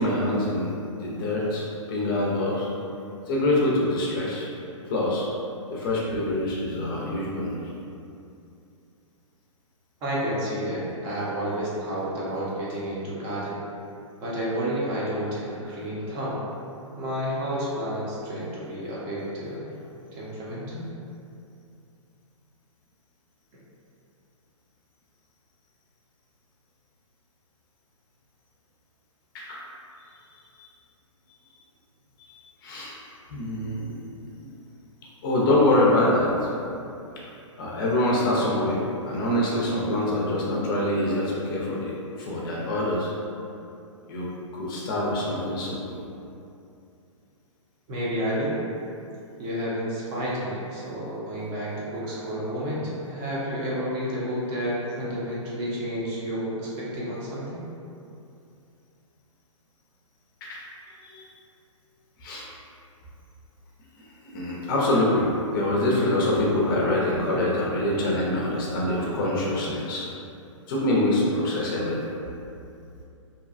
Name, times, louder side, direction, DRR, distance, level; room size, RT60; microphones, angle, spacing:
voice 1, 0.0-2.7 3.3-4.5 4.9-5.3 5.7-7.6 29.3-29.6 30.6-30.7 32.2-32.3 32.6-32.9 33.3-34.0 35.2-36.5 37.6-43.1 44.1-46.0 60.4-60.6 61.0-61.3 62.2-62.5 64.0-70.0 70.7-72.1, left 1 dB, 40° left, -4 dB, 0.5 m, -25 dB
voice 2, 10.0-13.6 14.2-16.4 17.0-19.7 20.1-20.9 47.9-48.5 49.4-57.6, equal, 30° right, -7 dB, 0.7 m, -30 dB
2.7 x 2.2 x 2.4 m, 2.6 s
hypercardioid pair, 125°, 17 cm